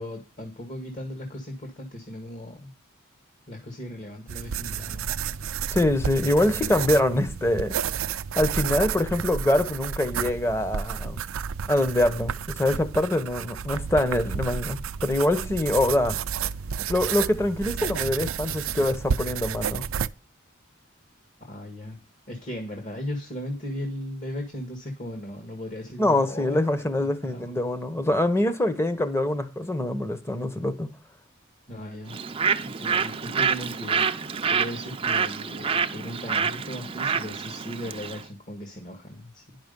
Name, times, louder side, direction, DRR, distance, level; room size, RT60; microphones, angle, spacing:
voice 1, 0.0-2.7 3.5-5.1 21.4-22.0 22.3-26.6 27.0-27.6 31.7-32.2 32.6-34.1 34.5-39.6, left 1 dB, 40° left, 1.8 m, -37 dB
sound 1, 4.3-20.1, right 7 dB, 75° right, 0.5 m, -31 dB
voice 2, 5.7-7.7 8.4-11.2 11.7-16.2 16.9-19.9 26.0-30.9, left 1 dB, 15° left, 1.0 m, -24 dB
Bird, 32.1-38.2, right 6 dB, 25° right, 0.5 m, -27 dB
10.5 x 6.0 x 5.3 m
head